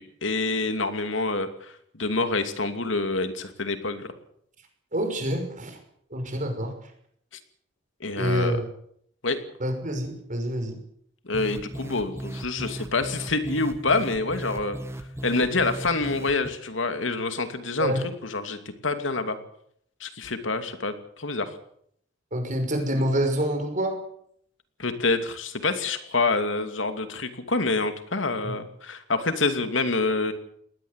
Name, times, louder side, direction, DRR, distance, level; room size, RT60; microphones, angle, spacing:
voice 1, 0.0-4.1 8.0-8.6 9.2-9.4 11.3-14.8 15.2-17.9 18.2-19.4 20.0-21.5 24.8-30.3, left 3 dB, 90° left, 8 dB, 2.7 m, -27 dB
voice 2, 4.9-5.8 6.1-6.7 8.2-8.6 9.6-10.7 17.8-18.0 22.3-24.0 28.4-28.5, equal, 45° right, 5 dB, 5.7 m, -27 dB
sound 1, 11.3-16.5, right 1 dB, 15° right, 1.8 m, -37 dB
20.0 x 17.5 x 8.2 m, 0.68 s
head